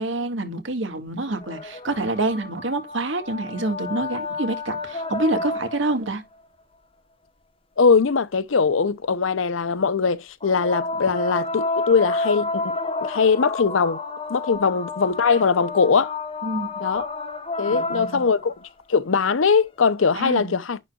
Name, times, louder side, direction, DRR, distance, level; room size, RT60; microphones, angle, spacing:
voice 1, 0.0-6.2 16.4-16.7 17.7-18.2 20.1-20.5, right 2 dB, 75° right, 1.8 m, -27 dB
sound 1, 1.3-6.1 10.4-18.7 20.0-20.1, left 3 dB, 30° left, 1.0 m, -30 dB
voice 2, 7.8-14.0 14.3-16.1 16.8-17.1 17.6-18.6 18.9-20.8, left 5 dB, 90° left, 0.7 m, -21 dB
10.5 x 3.9 x 2.3 m
head